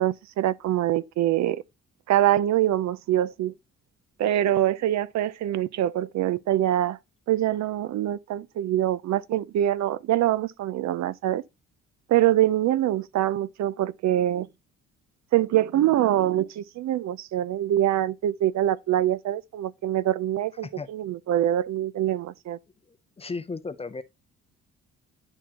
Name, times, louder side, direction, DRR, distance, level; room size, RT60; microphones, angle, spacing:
voice 1, 0.0-1.6 2.1-3.5 4.2-7.0 7.3-11.4 12.1-14.5 15.3-22.6, right 12 dB, 65° right, 0.5 m, -24 dB
voice 2, 22.9-24.0, left 4 dB, 20° left, 0.5 m, -35 dB
10.5 x 3.6 x 2.9 m
cardioid pair, 90°, 30 cm